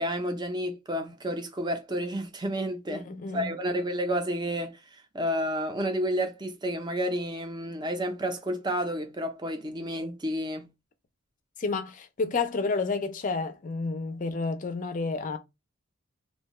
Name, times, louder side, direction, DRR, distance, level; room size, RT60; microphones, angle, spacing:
voice 1, 0.0-3.1 3.3-10.7, equal, 20° right, 0.5 m, -30 dB
voice 2, 2.9-3.5 11.6-15.4, left 4 dB, 35° left, 0.5 m, -30 dB
2.6 x 2.2 x 3.0 m
head